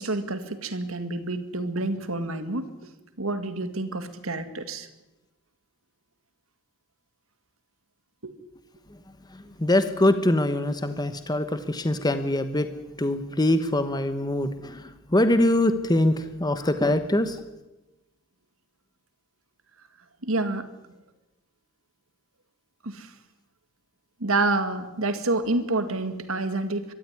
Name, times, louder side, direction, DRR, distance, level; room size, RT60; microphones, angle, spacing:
voice 1, 0.0-2.7 3.2-4.9 8.2-8.3 20.2-20.7 22.8-23.1 24.2-26.9, right 2 dB, 75° right, 9 dB, 2.1 m, -28 dB
voice 2, 9.6-12.7 13.0-14.8 15.1-17.4, left 1 dB, 20° left, 10 dB, 1.1 m, -23 dB
23.0 x 14.0 x 9.8 m, 1.0 s
head